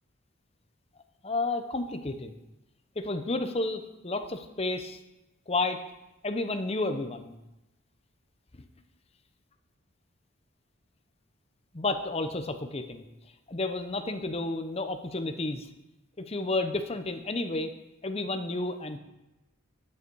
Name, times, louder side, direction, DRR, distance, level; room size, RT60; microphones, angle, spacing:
voice 1, 1.2-2.3 3.0-5.0 5.5-5.8 6.2-7.3 11.7-13.0 13.5-15.7 16.2-17.7 18.0-19.0, left 2 dB, 30° left, 8 dB, 0.8 m, -31 dB
11.0 x 9.6 x 4.7 m, 0.97 s
head